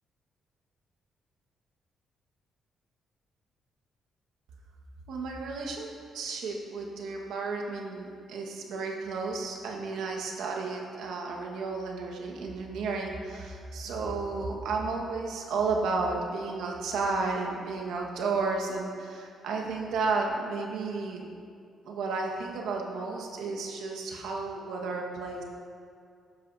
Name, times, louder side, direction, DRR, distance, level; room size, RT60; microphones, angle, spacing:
voice 1, 5.1-5.9 6.1-21.3 21.8-25.4, right 4 dB, 85° right, 0 dB, 1.4 m, -32 dB
13.0 x 10.5 x 2.7 m, 2.2 s
cardioid pair, 95°, 0 cm